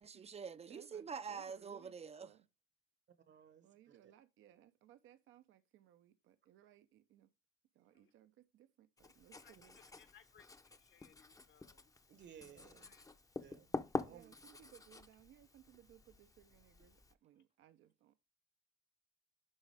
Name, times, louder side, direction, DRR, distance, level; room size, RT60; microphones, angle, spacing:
voice 1, 0.0-2.3, right 6 dB, 30° right, 0.4 m, -46 dB
voice 2, 0.7-2.4 3.6-7.3 7.7-9.8 12.4-12.9 14.1-18.1, right 12 dB, 90° right, 0.7 m, -64 dB
voice 3, 3.3-4.1 12.1-12.8 13.4-14.3, right 9 dB, 65° right, 1.1 m, -59 dB
Writing, 9.0-17.1, left 3 dB, 15° left, 0.6 m, -47 dB
voice 4, 10.0-11.9 12.8-13.0, left 8 dB, 70° left, 1.3 m, -66 dB
11.0 x 3.7 x 3.3 m
cardioid pair, 90°, 20 cm